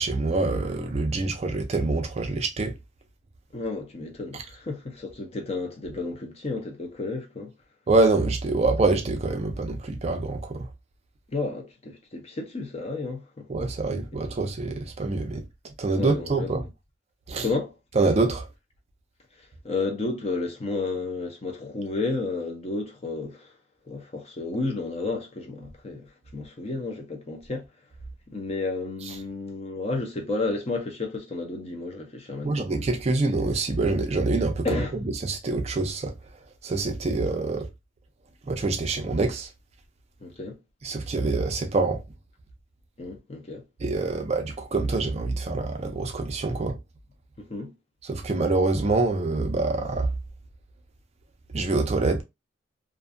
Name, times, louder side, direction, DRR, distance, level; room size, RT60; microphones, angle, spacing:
voice 1, 0.0-2.7 7.9-10.7 13.5-15.4 15.8-16.6 17.3-17.4 18.0-18.4 32.4-34.7 35.3-36.1 36.6-37.7 38.5-39.5 40.8-42.0 43.8-46.7 48.1-50.1 51.5-52.2, right 3 dB, 35° right, 0.4 m, -25 dB
voice 2, 3.5-7.5 11.3-13.5 15.9-16.7 17.4-17.7 19.6-23.5 23.9-27.7 28.3-32.7 34.6-34.9 40.2-40.6 43.0-43.6 47.4-47.7, left 3 dB, 30° left, 0.5 m, -32 dB
2.5 x 2.3 x 2.4 m
head